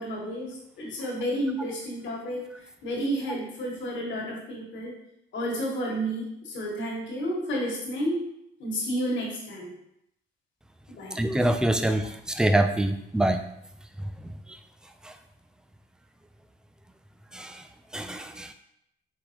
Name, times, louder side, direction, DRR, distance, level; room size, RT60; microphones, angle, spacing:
voice 1, 0.0-2.4 2.8-4.9 5.3-8.3 8.6-9.7 10.9-11.2, equal, 70° left, -3 dB, 1.6 m, -31 dB
voice 2, 11.1-13.4 15.0-15.1 17.3-17.6 17.9-18.5, right 1 dB, 5° right, 7 dB, 0.4 m, -25 dB
4.6 x 3.6 x 3.1 m, 0.78 s
cardioid pair, 90°, 20 cm